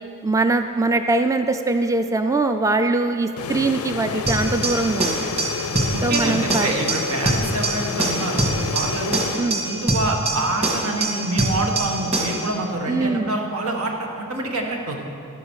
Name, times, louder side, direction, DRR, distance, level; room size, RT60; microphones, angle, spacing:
voice 1, 0.2-5.3 6.0-6.7 9.4-9.6 12.9-13.3, right 3 dB, 15° right, 7 dB, 0.3 m, -22 dB
sound 1, 3.4-10.0, left 5 dB, 85° left, 0.5 m, -30 dB
sound 2, 4.3-12.5, right 2 dB, 30° right, 2.1 m, -24 dB
voice 2, 5.9-9.2 9.6-15.0, right 2 dB, 90° right, 1 dB, 1.6 m, -26 dB
11.5 x 9.9 x 6.4 m, 2.7 s
head